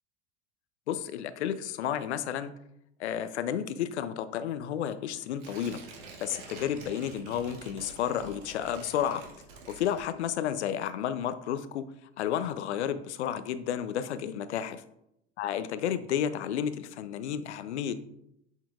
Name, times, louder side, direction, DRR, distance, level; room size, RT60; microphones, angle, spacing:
voice 1, 0.9-2.5 3.0-5.8 6.2-9.2 9.7-11.9 12.2-14.8 15.4-17.9, left 9 dB, 75° left, 13 dB, 0.6 m, -32 dB
Tearing, 5.4-10.5 10.8-10.9, right 4 dB, 55° right, 1.8 m, -48 dB
7.2 x 5.6 x 2.4 m, 0.80 s
hypercardioid pair, 85°, 34 cm